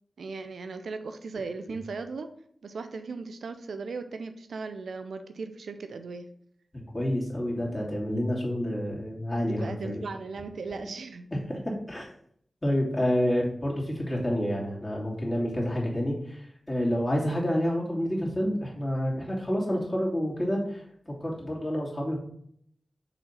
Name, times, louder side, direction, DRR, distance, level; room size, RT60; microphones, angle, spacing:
voice 1, 0.2-2.3 2.6-6.3 9.6-11.3, right 4 dB, 90° right, 9 dB, 0.5 m, -37 dB
voice 2, 6.9-10.0 11.5-11.6 11.9-12.1 12.6-16.4 16.7-22.2, equal, 30° left, -4 dB, 2.8 m, -28 dB
5.0 x 3.6 x 5.7 m, 0.65 s
cardioid pair, 45°, 0 cm